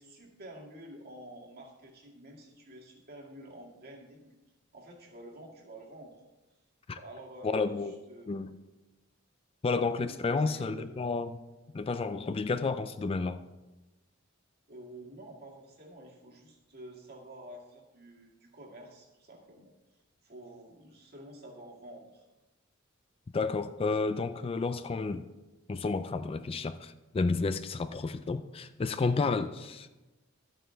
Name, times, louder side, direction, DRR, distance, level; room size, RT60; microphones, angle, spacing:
voice 1, 0.0-4.3 4.7-6.2 7.0-8.4 10.2-11.0 14.7-19.7 20.2-22.3, right 1 dB, 50° right, 1.9 m, -49 dB
voice 2, 7.4-7.9 8.3-8.5 9.6-11.4 11.7-13.4 23.3-25.3 25.7-29.9, left 4 dB, 30° left, 0.3 m, -31 dB
12.0 x 9.0 x 3.4 m
head